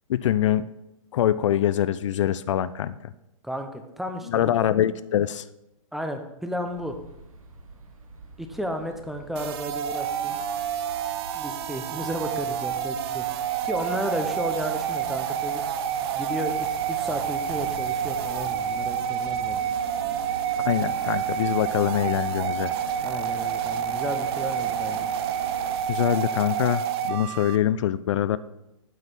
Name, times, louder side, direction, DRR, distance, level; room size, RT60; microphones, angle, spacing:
voice 1, 0.1-0.6 1.1-3.1 4.3-5.4 20.6-22.7 25.9-28.4, left 11 dB, 60° left, 16 dB, 0.4 m, -24 dB
voice 2, 3.4-4.5 5.9-7.0 8.4-10.4 11.3-15.6 16.2-19.6 23.0-25.1, equal, ahead, 5 dB, 0.6 m, -33 dB
sound 1, 6.7-25.8, right 3 dB, 80° right, 1.4 m, -43 dB
sound 2, 9.4-27.6, right 9 dB, 45° right, 0.7 m, -28 dB
8.0 x 4.9 x 5.7 m, 0.89 s
hypercardioid pair, 135°, 18 cm